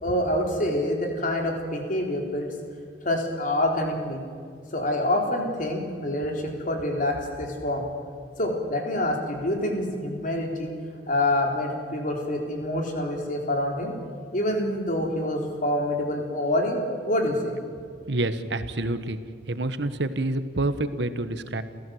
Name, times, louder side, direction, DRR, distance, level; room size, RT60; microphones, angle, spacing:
voice 1, 0.0-2.5 3.0-4.2 4.7-7.9 8.4-10.7 11.1-13.9 14.3-17.6, left 1 dB, 50° left, 2 dB, 3.9 m, -26 dB
voice 2, 18.1-19.2 19.5-21.6, right 2 dB, 70° right, 11 dB, 1.3 m, -27 dB
28.5 x 15.5 x 7.9 m, 2.2 s
head